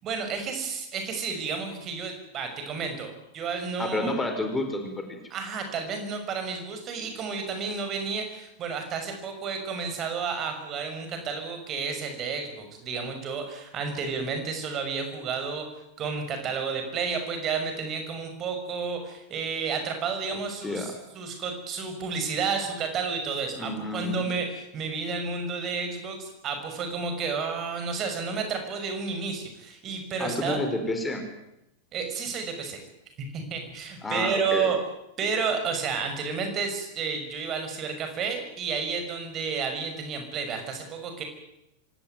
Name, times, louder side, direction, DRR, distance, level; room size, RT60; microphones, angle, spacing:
voice 1, 0.0-4.1 5.3-15.7 16.0-30.6 31.9-32.8 33.2-34.8 35.2-41.2, right 5 dB, 30° right, 6 dB, 6.0 m, -31 dB
voice 2, 3.8-5.2 20.6-20.9 23.6-24.3 30.2-31.2 34.0-34.7, left 2 dB, 10° left, 5 dB, 4.5 m, -30 dB
25.5 x 18.5 x 9.3 m, 0.85 s
figure-of-eight pair, 90°, 0 cm